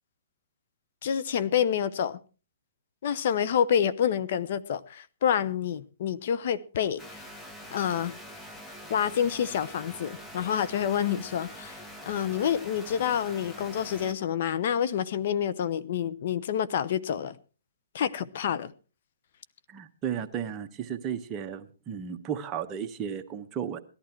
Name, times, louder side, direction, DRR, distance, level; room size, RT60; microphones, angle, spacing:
voice 1, 1.0-2.2 3.0-7.2 7.7-8.1 8.9-17.3 17.9-18.7, left 9 dB, 55° left, 0.8 m, -28 dB
sound 1, 7.0-14.1, equal, 10° left, 1.4 m, -44 dB
voice 2, 19.7-23.8, right 8 dB, 25° right, 1.2 m, -34 dB
18.0 x 11.5 x 4.5 m
hypercardioid pair, 145°, 0 cm